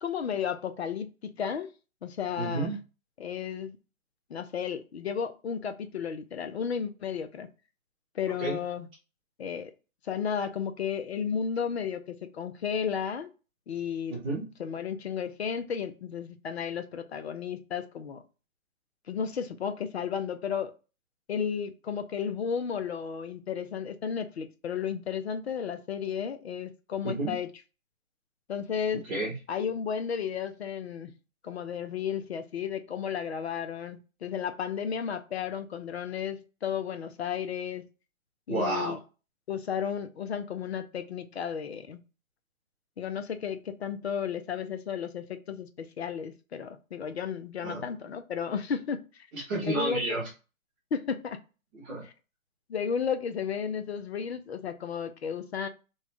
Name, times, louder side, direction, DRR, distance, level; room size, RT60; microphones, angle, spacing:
voice 1, 0.0-1.7 2.0-2.8 3.2-3.8 4.3-7.5 8.1-8.9 9.4-9.7 10.1-13.3 13.7-14.2 14.6-18.2 19.1-20.7 21.3-27.5 28.5-29.0 29.5-31.1 31.4-37.8 38.5-39.0 39.5-42.0 43.0-49.3 49.6-50.2 50.9-51.4 52.7-55.7, left 7 dB, 50° left, 0.6 m, -33 dB
voice 2, 2.4-2.8 8.4-8.6 14.1-14.5 27.0-27.4 29.0-29.4 38.5-38.9 47.6-47.8 49.3-50.3 51.7-52.0, right 2 dB, 5° right, 0.6 m, -31 dB
3.2 x 2.2 x 4.1 m
hypercardioid pair, 155°, 42 cm